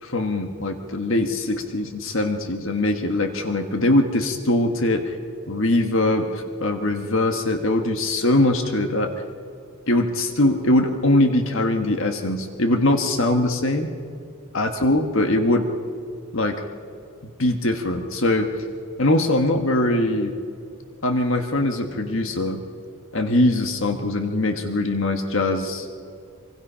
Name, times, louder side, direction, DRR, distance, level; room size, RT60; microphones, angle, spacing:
voice 1, 0.0-5.2 5.5-9.1 9.9-13.9 14.5-15.7 16.3-16.6 17.2-18.5 19.0-20.3 21.0-22.6 23.1-26.0, left 1 dB, 60° left, 6 dB, 1.5 m, -22 dB
25.0 x 24.5 x 5.7 m, 2.4 s
head